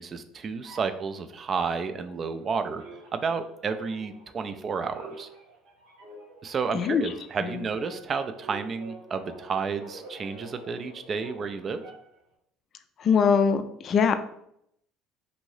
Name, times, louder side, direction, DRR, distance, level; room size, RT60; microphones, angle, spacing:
voice 1, 0.0-2.8 3.1-5.3 6.4-11.8, right 5 dB, 40° right, 9 dB, 0.3 m, -31 dB
sound 1, 0.6-2.5 2.8-12.3, right 3 dB, 80° right, 0.8 m, -47 dB
voice 2, 13.0-14.1, left 6 dB, 50° left, 10 dB, 0.3 m, -22 dB
2.6 x 2.6 x 3.1 m, 0.74 s
hypercardioid pair, 75°, 0 cm